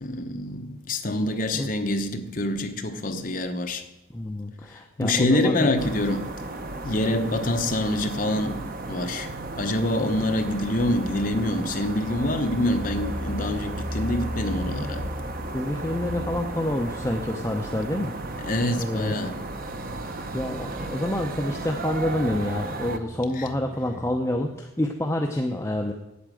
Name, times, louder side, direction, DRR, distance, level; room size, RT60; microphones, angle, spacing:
voice 1, 0.0-3.9 4.7-6.3 6.8-9.3 9.6-15.1 18.4-19.4 23.4-23.5, left 1 dB, 40° left, 0.9 m, -26 dB
voice 2, 4.1-5.6 14.7-14.9 15.5-19.1 20.3-25.9, left 1 dB, 15° left, 0.6 m, -28 dB
sound 1, 5.8-23.0, right 2 dB, 45° right, 0.9 m, -35 dB
sound 2, 9.2-24.3, left 1 dB, 15° right, 2.1 m, -39 dB
8.8 x 8.5 x 7.6 m
head